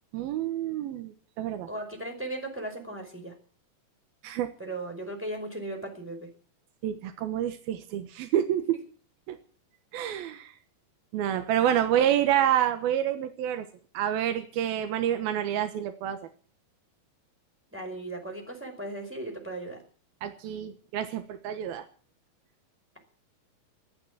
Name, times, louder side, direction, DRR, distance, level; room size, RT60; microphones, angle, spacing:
voice 1, 0.1-1.7 4.2-4.5 6.8-8.8 9.3-9.4 9.9-10.5 11.1-13.7 13.9-16.2 20.2-21.8, right 11 dB, 85° right, 8 dB, 3.1 m, -28 dB
voice 2, 1.7-3.3 4.6-6.3 11.9-12.0 12.3-12.5 17.7-19.8, right 2 dB, 5° right, 1 dB, 4.8 m, -37 dB
14.5 x 12.5 x 7.5 m, 0.42 s
omnidirectional pair, 4.2 m